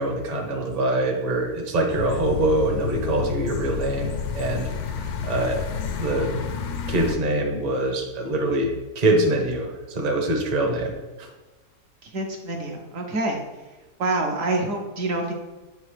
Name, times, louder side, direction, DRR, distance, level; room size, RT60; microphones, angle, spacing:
voice 1, 0.0-4.7 5.0-5.6 6.0-6.3 6.9-10.9 11.2-11.3, right 2 dB, 35° right, 2 dB, 0.8 m, -24 dB
sound 1, 1.9-7.2, left 6 dB, 75° left, 1.1 m, -30 dB
voice 2, 12.0-13.4 14.0-15.3, right 2 dB, 60° right, 1 dB, 1.1 m, -26 dB
8.3 x 3.8 x 3.3 m, 1.2 s
omnidirectional pair, 1.7 m